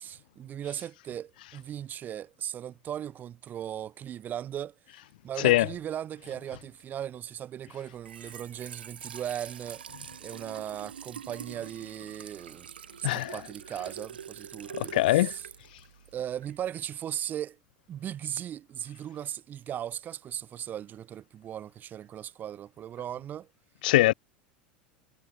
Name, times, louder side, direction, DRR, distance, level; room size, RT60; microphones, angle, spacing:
voice 1, 0.0-4.7 5.2-9.8 10.2-12.7 13.0-15.5 16.1-17.6 17.9-23.5, right 10 dB, 35° right, 3.6 m, -37 dB
Trickle dribble / Fill (with liquid), 7.9-16.7, right 8 dB, 75° right, 1.8 m, -45 dB
voice 2, 14.9-15.3 23.8-24.1, left 17 dB, 60° left, 0.4 m, -21 dB
figure-of-eight pair, 80°, 5 cm